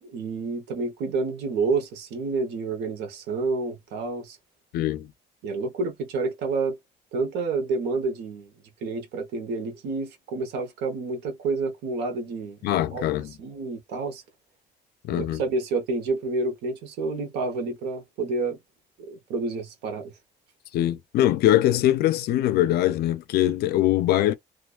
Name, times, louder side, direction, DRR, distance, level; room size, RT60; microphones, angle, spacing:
voice 1, 0.0-4.4 5.4-6.8 7.1-8.5 8.8-14.2 15.1-18.6 19.0-20.1, right 3 dB, 85° right, 0.9 m, -29 dB
voice 2, 4.7-5.1 12.6-13.3 15.0-15.4 20.7-24.3, left 13 dB, 70° left, 0.4 m, -22 dB
2.4 x 2.2 x 2.3 m
cardioid pair, 110°, 17 cm